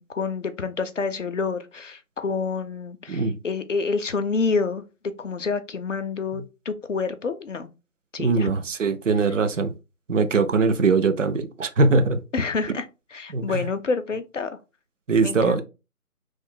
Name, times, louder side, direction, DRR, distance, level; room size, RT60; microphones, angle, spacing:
voice 1, 0.0-4.8 5.2-7.7 8.1-8.5 12.3-12.9 13.1-14.5 15.2-15.6, left 4 dB, 55° left, 0.5 m, -28 dB
voice 2, 8.2-9.7 10.1-12.2 13.3-13.6 15.1-15.6, right 4 dB, 60° right, 0.5 m, -21 dB
3.1 x 2.1 x 3.7 m
figure-of-eight pair, 170°, 44 cm